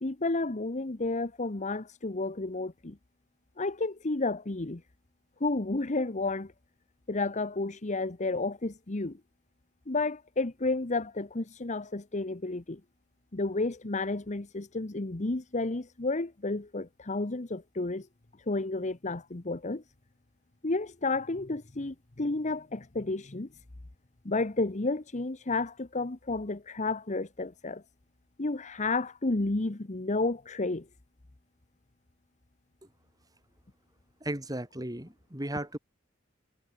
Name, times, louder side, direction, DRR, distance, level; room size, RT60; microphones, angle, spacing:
voice 1, 0.0-3.0 3.6-4.8 5.4-6.5 7.1-9.2 9.9-12.8 13.3-18.1 18.5-19.8 20.6-23.5 24.2-27.8 28.4-30.9, left 2 dB, 35° left, 1.1 m, -31 dB
voice 2, 34.2-35.8, right 1 dB, 20° right, 4.6 m, -35 dB
head